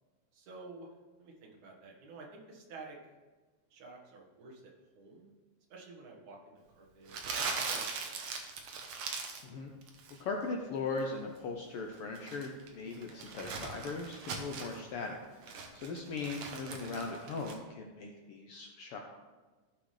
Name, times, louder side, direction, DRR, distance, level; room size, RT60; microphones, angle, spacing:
voice 1, 0.3-0.9 1.2-3.0 3.7-4.6 5.0-5.3 5.7-8.1, right 3 dB, 80° right, -1 dB, 2.9 m, -51 dB
Crumpling crinkling, 7.1-9.5 9.8-10.2 11.9-14.8 15.2-17.6, right 4 dB, 65° right, 1.7 m, -40 dB
voice 2, 10.2-15.2 15.7-19.0, left 3 dB, 70° left, 2 dB, 1.3 m, -39 dB
15.0 x 5.9 x 3.3 m, 1.3 s
omnidirectional pair, 3.3 m